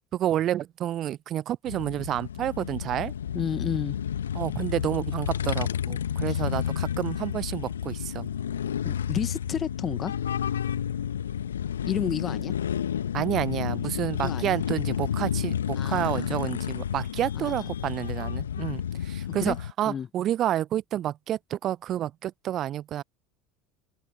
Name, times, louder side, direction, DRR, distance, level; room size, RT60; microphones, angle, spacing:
voice 1, 0.2-3.1 4.3-8.3 13.1-23.0, right 12 dB, 40° right, 0.9 m, -29 dB
sound 1, 1.7-19.7, left 9 dB, 75° left, 1.7 m, -31 dB
voice 2, 3.3-4.0 6.3-6.4 8.8-10.1 11.8-12.5 14.2-14.6 15.7-16.3 17.3-17.7 19.4-19.6 19.8-20.1, left 7 dB, 30° left, 1.7 m, -31 dB
open air
figure-of-eight pair, 70°, 0 cm